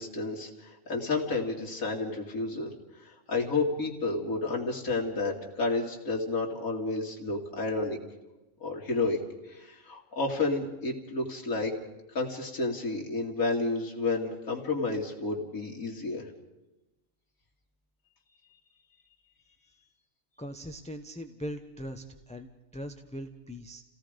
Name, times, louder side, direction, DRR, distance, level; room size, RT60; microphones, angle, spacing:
voice 1, 0.0-2.7 3.0-8.0 8.6-9.2 9.5-11.7 12.1-16.2, left 3 dB, 90° left, -1 dB, 2.9 m, -31 dB
voice 2, 20.4-23.8, equal, 5° left, 6 dB, 0.8 m, -40 dB
29.0 x 17.5 x 5.1 m, 1.0 s
omnidirectional pair, 1.5 m